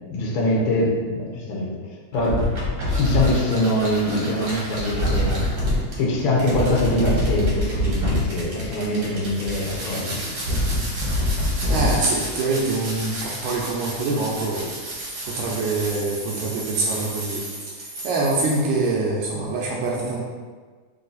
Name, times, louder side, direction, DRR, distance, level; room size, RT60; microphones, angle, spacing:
voice 1, 0.1-1.8 2.1-2.5 2.9-5.4 6.0-10.2, left 1 dB, 70° left, -3 dB, 1.4 m, -23 dB
sound 1, 2.1-18.6, left 1 dB, 55° right, 1.4 m, -27 dB
voice 2, 11.7-14.7 15.2-17.4 17.7-20.3, right 3 dB, 80° right, -3 dB, 2.0 m, -25 dB
4.7 x 2.8 x 3.9 m, 1.5 s
omnidirectional pair, 3.6 m